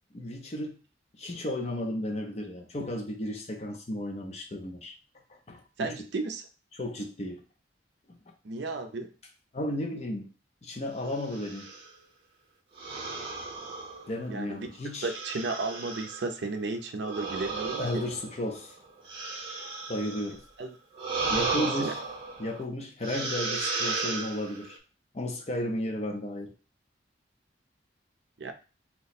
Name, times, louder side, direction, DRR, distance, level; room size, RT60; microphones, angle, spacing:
voice 1, 0.1-0.8 1.2-4.9 5.3-5.9 6.8-7.4 9.5-10.3 10.6-11.7 14.1-15.1 17.8-18.7 19.9-20.4 21.3-22.0 22.4-24.8 25.1-26.5, left 1 dB, 35° left, 3 dB, 0.6 m, -34 dB
voice 2, 5.8-6.4 8.4-9.1 14.3-14.7 15.0-18.0 20.6-20.8 21.5-21.9 28.4-28.5, right 3 dB, 65° right, 6 dB, 0.5 m, -34 dB
sound 1, 11.2-11.9 12.8-14.4 15.0-16.3 17.0-20.4 20.9-22.6 23.0-24.8, right 4 dB, 30° right, 0.7 m, -34 dB
2.9 x 2.1 x 4.1 m, 0.34 s
head